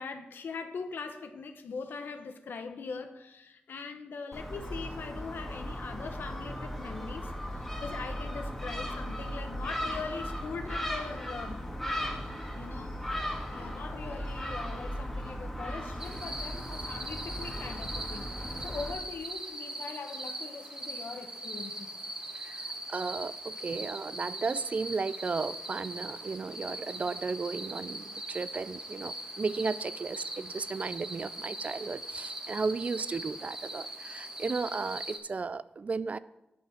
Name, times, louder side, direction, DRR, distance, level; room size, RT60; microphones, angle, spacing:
voice 1, 0.0-11.6 12.5-13.0 13.5-21.9, left 4 dB, 85° left, 0.8 m, -41 dB
Gull seagull, 4.3-18.9, equal, 5° left, 1.6 m, -37 dB
sound 1, 16.0-35.2, right 1 dB, 20° right, 1.4 m, -40 dB
voice 2, 22.3-36.2, right 4 dB, 45° right, 0.3 m, -34 dB
9.2 x 5.5 x 5.7 m
wide cardioid pair, 95°, 3 cm